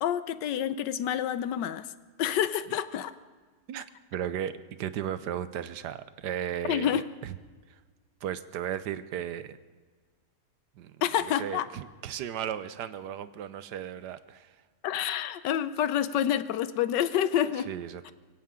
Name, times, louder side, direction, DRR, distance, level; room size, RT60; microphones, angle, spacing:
voice 1, 0.0-1.9 2.2-3.1 6.7-7.0 11.0-11.7 14.8-17.7, left 10 dB, 80° left, 14 dB, 1.3 m, -28 dB
voice 2, 4.1-7.3 7.7-7.8 8.2-9.6 10.8-14.6 17.7-18.1, right 10 dB, 75° right, 13 dB, 1.3 m, -35 dB
23.0 x 16.0 x 3.7 m, 1.4 s
omnidirectional pair, 1.9 m